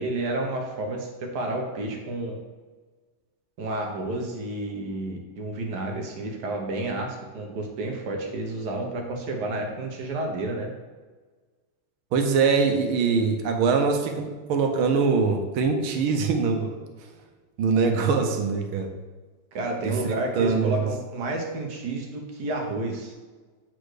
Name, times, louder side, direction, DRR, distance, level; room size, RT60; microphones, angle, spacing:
voice 1, 0.0-2.4 3.6-10.7 19.5-23.1, right 2 dB, 55° right, 2 dB, 1.5 m, -30 dB
voice 2, 12.1-16.7 17.6-18.9 19.8-20.8, right 5 dB, 75° right, 5 dB, 1.6 m, -23 dB
7.7 x 4.3 x 4.8 m, 1.3 s
omnidirectional pair, 2.3 m